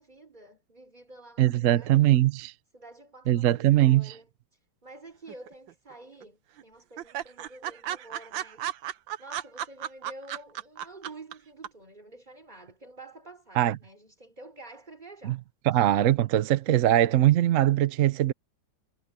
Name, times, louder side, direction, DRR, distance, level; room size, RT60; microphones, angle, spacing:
voice 1, 0.0-2.0 2.7-8.7 9.2-15.4 15.7-15.9, right 2 dB, 20° right, 4.0 m, -49 dB
voice 2, 1.4-2.5 3.3-4.1 13.6-13.8 15.2-15.4 15.7-18.3, right 13 dB, 65° right, 0.8 m, -21 dB
sound 1, 5.3-5.9 6.2-6.3 6.6-6.7 7.0-11.3 11.6-11.7, right 11 dB, 80° right, 1.6 m, -34 dB
omnidirectional pair, 2.0 m